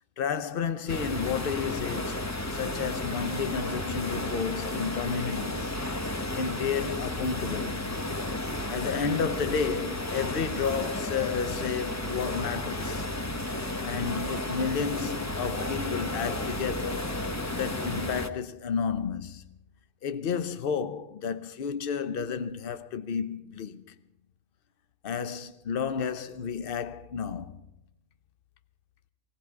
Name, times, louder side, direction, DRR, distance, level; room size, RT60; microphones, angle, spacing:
voice 1, 0.2-2.2 2.5-5.8 6.3-8.0 8.7-13.0 13.8-17.1 17.5-19.4 20.0-23.9 25.0-27.6, left 6 dB, 50° left, 0.9 m, -31 dB
sound 1, 0.9-18.3, left 1 dB, 20° left, 0.5 m, -33 dB
17.5 x 17.5 x 4.6 m
omnidirectional pair, 1.5 m